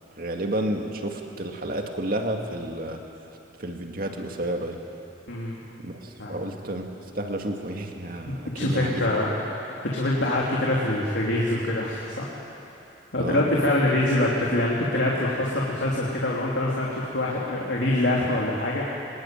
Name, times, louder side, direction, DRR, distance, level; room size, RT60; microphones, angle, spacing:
voice 1, 0.2-3.0 3.6-4.8 5.8-6.9 7.1-9.1 13.2-13.4, right 1 dB, 50° right, 3 dB, 2.3 m, -31 dB
voice 2, 5.3-5.6 6.2-6.4 8.3-9.3 9.9-12.3 13.1-18.8, left 1 dB, 70° left, -4 dB, 3.1 m, -25 dB
25.0 x 21.0 x 9.1 m, 3.0 s
head